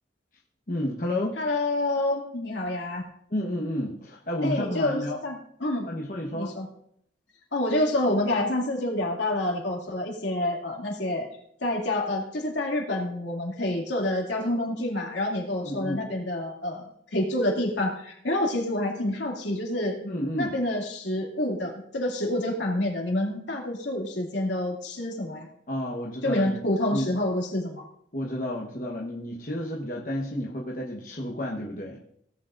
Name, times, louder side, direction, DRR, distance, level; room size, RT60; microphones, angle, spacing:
voice 1, 0.7-1.4 3.3-5.2 5.9-6.5 15.6-16.1 20.0-20.5 25.7-26.6 26.9-27.1 28.1-32.0, left 1 dB, 45° left, -2 dB, 1.2 m, -31 dB
voice 2, 1.4-3.0 4.4-5.9 6.3-6.7 7.5-11.3 11.6-20.0 20.4-25.5 26.2-27.8, left 1 dB, 80° left, 0 dB, 2.4 m, -28 dB
17.5 x 8.6 x 2.5 m, 0.69 s
head